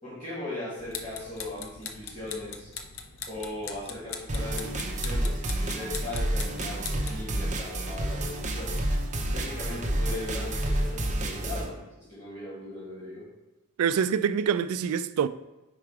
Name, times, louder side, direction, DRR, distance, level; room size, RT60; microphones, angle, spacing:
voice 1, 0.0-2.7 3.3-8.8 9.3-13.3, left 2 dB, 30° left, 2.2 m, -38 dB
sound 1, 0.8-7.3, left 6 dB, 60° left, 0.6 m, -41 dB
sound 2, 4.3-11.7, right 1 dB, 35° right, 0.7 m, -29 dB
voice 2, 13.8-15.3, right 7 dB, 75° right, 0.3 m, -25 dB
4.8 x 4.8 x 4.6 m
head